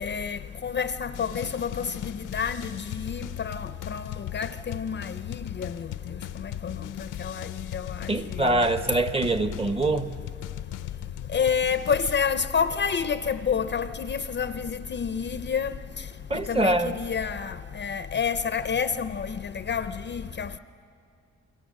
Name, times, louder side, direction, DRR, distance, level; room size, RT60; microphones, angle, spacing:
voice 1, 0.0-5.9 6.4-8.1 8.4-8.6 11.3-15.8 16.5-20.6, left 6 dB, 35° left, 0.5 m, -29 dB
sound 1, 1.1-12.2, left 13 dB, 85° left, 0.6 m, -39 dB
voice 2, 8.1-10.1 16.3-17.0, right 2 dB, 20° right, 0.8 m, -24 dB
29.0 x 22.5 x 6.3 m
wide cardioid pair, 150°, 30 cm